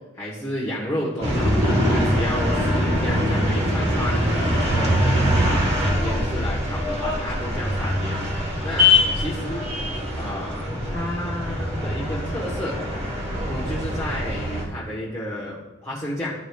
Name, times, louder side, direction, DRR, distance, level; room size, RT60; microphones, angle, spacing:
voice 1, 0.1-4.9 5.4-8.2 8.6-9.7 10.2-12.7 13.4-16.3, left 1 dB, 15° left, -6 dB, 1.1 m, -31 dB
sound 1, 1.2-14.6, left 1 dB, 30° right, 1.2 m, -23 dB
11.5 x 4.9 x 2.3 m, 1.1 s
head